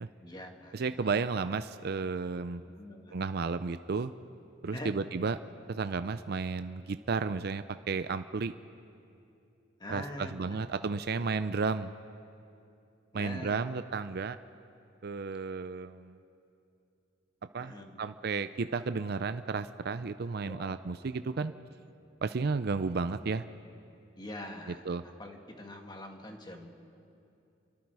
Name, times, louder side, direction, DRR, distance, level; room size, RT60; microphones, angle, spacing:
voice 1, 0.2-1.1 2.8-3.2 4.7-5.3 9.8-10.6 11.1-11.4 13.1-13.6 17.6-18.0 20.4-20.8 21.4-21.5 24.2-26.7, left 1 dB, 25° left, 3 dB, 1.9 m, -44 dB
voice 2, 0.7-2.6 3.1-4.1 4.6-5.4 5.7-8.5 9.9-12.0 13.1-14.4 15.0-16.2 17.5-21.5 22.2-23.4 24.7-25.0, right 4 dB, 55° right, 11 dB, 0.5 m, -33 dB
29.5 x 23.5 x 4.8 m, 2.6 s
head